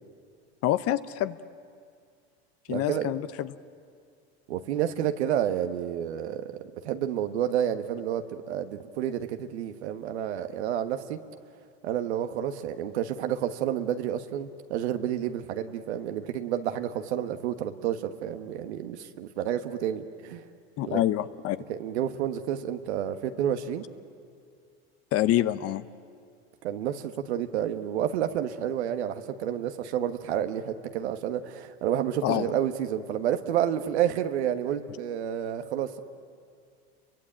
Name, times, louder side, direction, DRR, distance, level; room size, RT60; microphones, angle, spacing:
voice 1, 0.6-1.4 2.7-3.5 20.8-21.6 25.1-25.8 32.2-32.6, left 13 dB, 45° left, 13 dB, 0.9 m, -26 dB
voice 2, 2.7-3.1 4.5-11.2 11.8-20.4 20.8-21.0 21.7-23.8 26.6-36.0, right 10 dB, 80° right, 8 dB, 1.5 m, -30 dB
29.5 x 23.0 x 8.8 m, 2.2 s
hypercardioid pair, 100°, 33 cm